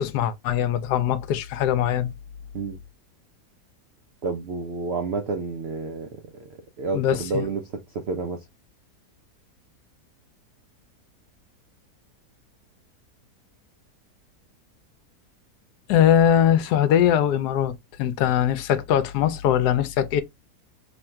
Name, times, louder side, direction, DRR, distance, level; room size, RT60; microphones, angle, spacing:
voice 1, 0.0-2.1 6.9-7.4 15.9-20.2, left 10 dB, 80° left, 1.1 m, -21 dB
voice 2, 4.2-8.4, right 4 dB, 75° right, 0.5 m, -30 dB
3.2 x 2.4 x 4.3 m
omnidirectional pair, 1.7 m